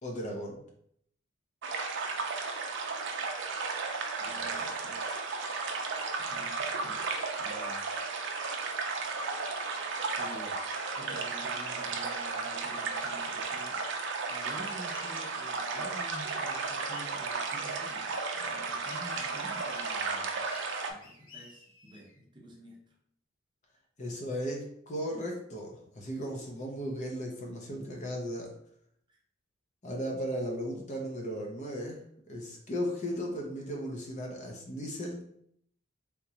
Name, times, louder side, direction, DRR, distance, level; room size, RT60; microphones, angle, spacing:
voice 1, 0.0-0.6 24.0-28.5 29.8-32.0 32.3-35.2, equal, 35° left, 1 dB, 0.7 m, -36 dB
sound 1, 1.6-20.9, right 4 dB, 65° right, 0.5 m, -34 dB
voice 2, 4.2-5.0 6.2-7.1 7.4-7.8 10.2-10.7 11.0-13.8 14.3-20.4 20.9-22.8 29.1-29.2, equal, 25° right, -1 dB, 0.7 m, -49 dB
sound 2, 14.9-16.0 16.6-17.5 18.8-20.0 20.5-22.2, left 4 dB, 80° left, 0.9 m, -54 dB
3.5 x 2.9 x 2.8 m, 0.69 s
head